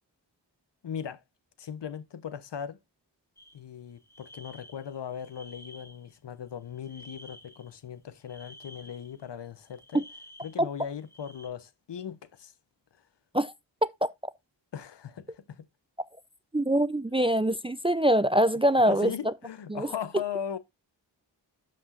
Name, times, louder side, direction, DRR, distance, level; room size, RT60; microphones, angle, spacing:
voice 1, 0.8-1.2 1.6-2.8 3.5-10.0 10.4-12.5 14.7-15.6 17.1-17.2 18.9-20.6, left 8 dB, 65° left, 0.9 m, -38 dB
sound 1, 3.4-3.6 3.9-6.2 6.7-7.8 8.2-9.3 9.7-11.5, left 1 dB, 5° left, 2.1 m, -52 dB
voice 2, 16.5-19.1 19.7-19.9, right 1 dB, 10° right, 0.5 m, -23 dB
12.5 x 5.3 x 2.5 m
cardioid pair, 40°, 45 cm